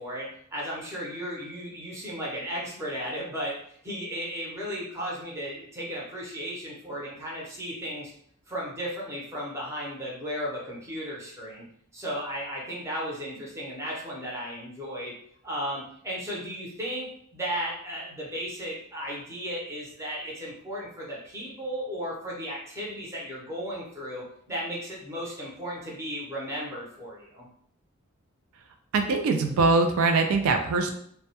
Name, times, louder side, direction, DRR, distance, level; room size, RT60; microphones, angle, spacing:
voice 1, 0.0-8.1 8.5-11.6 11.9-15.1 15.4-27.5, equal, 15° right, -5 dB, 0.6 m, -35 dB
voice 2, 28.9-30.9, right 3 dB, 80° right, 5 dB, 0.3 m, -22 dB
2.2 x 2.1 x 2.8 m, 0.67 s
head